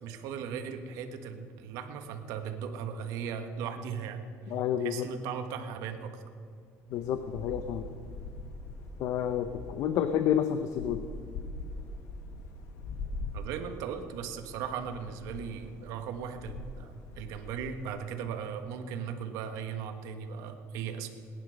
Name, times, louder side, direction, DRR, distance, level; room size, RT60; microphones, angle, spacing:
voice 1, 0.0-4.2 4.8-6.2 13.3-21.1, right 7 dB, 80° right, 6 dB, 1.5 m, -37 dB
voice 2, 4.5-5.1 6.9-7.9 9.0-11.0, left 9 dB, 60° left, 9 dB, 0.8 m, -29 dB
sound 1, 6.9-18.0, left 2 dB, 90° left, 1.6 m, -43 dB
19.0 x 10.5 x 6.5 m, 2.2 s
cardioid pair, 160°, 6 cm